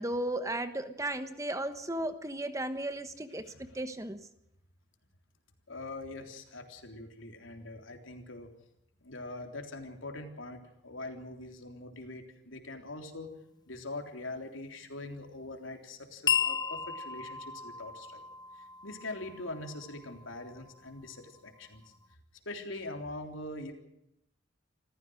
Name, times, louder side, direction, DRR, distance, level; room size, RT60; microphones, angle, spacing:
voice 1, 0.0-4.2, right 1 dB, 15° right, 10 dB, 1.1 m, -35 dB
voice 2, 3.5-3.8 5.7-8.5 9.0-13.3 13.7-18.3 18.6-21.8 22.5-23.7, left 2 dB, 90° left, 4 dB, 3.6 m, -43 dB
sound 1, 16.3-20.9, left 7 dB, 20° left, 1.0 m, -35 dB
26.5 x 15.0 x 6.4 m, 0.80 s
head